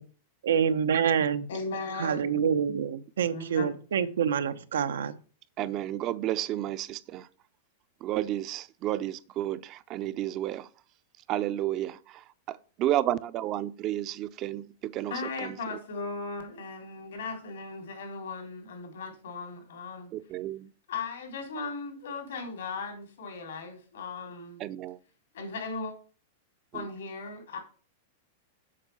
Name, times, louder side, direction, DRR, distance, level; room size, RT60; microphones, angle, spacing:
voice 1, 0.4-1.5 2.0-5.2, right 7 dB, 90° right, 0.8 m, -27 dB
voice 2, 1.5-2.5 3.3-3.8 15.0-20.1 20.9-24.6 25.3-25.9 26.7-27.6, left 4 dB, 85° left, 3.6 m, -37 dB
voice 3, 5.6-7.3 8.0-10.7 11.3-15.1 15.4-15.6 20.1-20.7 24.6-25.0 26.7-26.8, right 13 dB, 40° right, 0.5 m, -32 dB
7.6 x 5.4 x 6.8 m
hypercardioid pair, 135°, 0 cm